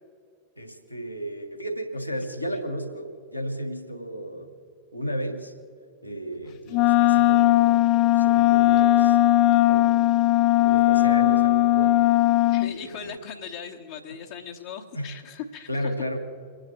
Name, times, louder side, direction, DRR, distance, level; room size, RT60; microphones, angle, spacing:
voice 1, 0.6-4.5 4.9-5.5 6.0-7.8 8.1-9.2 9.5-9.9 10.6-12.0 12.6-13.1 14.9-15.1 15.7-16.2, equal, 90° left, 2 dB, 1.6 m, -33 dB
Wind instrument woodwind instrument, 6.7-12.7, left 15 dB, 40° left, 0.3 m, -19 dB
voice 2, 12.5-15.9, left 7 dB, 55° left, -1 dB, 1.0 m, -39 dB
29.0 x 9.9 x 3.0 m, 2.3 s
figure-of-eight pair, 90°, 0 cm